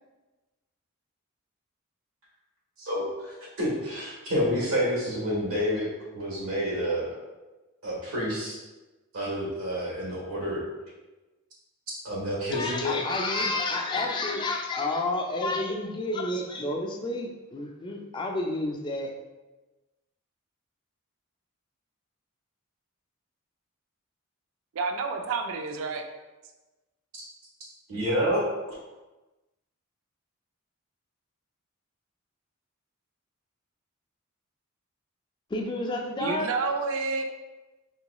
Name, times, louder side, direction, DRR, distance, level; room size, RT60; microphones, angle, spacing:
voice 1, 2.8-7.2 7.8-8.6 9.1-10.6 12.0-13.0 27.9-28.8, equal, 90° right, -4 dB, 1.3 m, -29 dB
voice 2, 12.5-19.1 35.5-36.5, left 2 dB, 20° left, 2 dB, 0.3 m, -30 dB
voice 3, 24.7-26.1 36.2-37.2, right 4 dB, 70° right, 5 dB, 0.3 m, -29 dB
3.7 x 2.9 x 2.2 m, 1.1 s
head